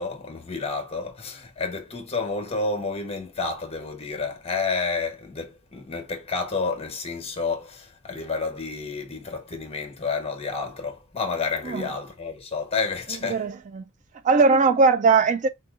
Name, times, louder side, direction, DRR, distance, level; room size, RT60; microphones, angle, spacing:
voice 1, 0.0-13.4, left 4 dB, 30° left, 1.0 m, -30 dB
voice 2, 13.3-13.8 14.2-15.5, right 4 dB, 35° right, 0.3 m, -19 dB
4.5 x 2.7 x 2.4 m
head